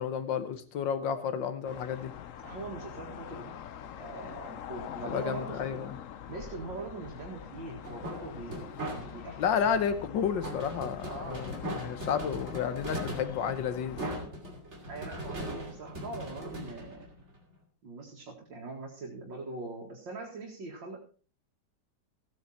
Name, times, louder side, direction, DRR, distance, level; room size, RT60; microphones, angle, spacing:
voice 1, 0.0-2.1 5.1-6.0 9.4-14.0, left 7 dB, 85° left, 11 dB, 1.8 m, -31 dB
sound 1, 1.7-14.2, left 9 dB, 60° left, 0.9 m, -44 dB
voice 2, 2.4-3.5 3.8-5.9 6.3-9.7 11.1-11.4 14.9-17.1 17.8-21.0, right 3 dB, 90° right, -2 dB, 2.8 m, -42 dB
sound 2, 7.8-9.4 10.4-17.6, equal, 35° right, 3.0 m, -39 dB
15.0 x 9.4 x 4.3 m, 0.38 s
omnidirectional pair, 2.0 m